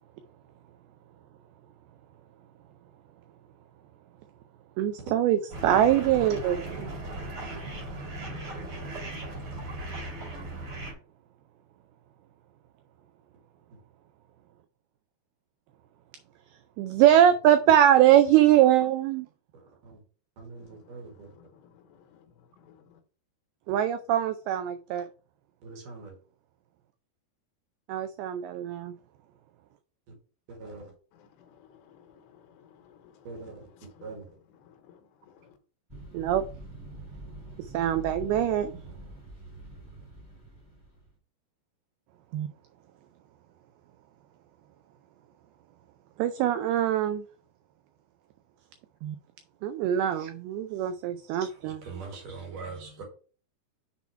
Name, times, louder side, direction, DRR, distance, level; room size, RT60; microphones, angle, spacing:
voice 1, 4.8-7.0 16.8-19.3 23.7-25.1 27.9-28.9 36.1-36.4 37.6-38.7 42.3-42.5 46.2-47.2 49.0-49.2 49.6-51.8, right 11 dB, 90° right, 2.2 m, -23 dB
sound 1, 5.5-10.9, right 2 dB, 40° right, 2.6 m, -37 dB
voice 2, 17.0-17.3 19.8-20.0 20.4-21.3 25.6-26.2 30.1-30.2 30.5-30.9 33.2-33.7 34.0-34.3 38.8-39.1 39.7-39.8 51.4-53.0, right 4 dB, 55° right, 3.0 m, -43 dB
voice 3, 20.6-23.0 31.1-34.2 34.5-35.6, left 8 dB, 80° left, 3.1 m, -58 dB
sound 2, 35.9-41.2, right 1 dB, 15° right, 0.7 m, -45 dB
7.0 x 4.1 x 4.5 m
omnidirectional pair, 5.0 m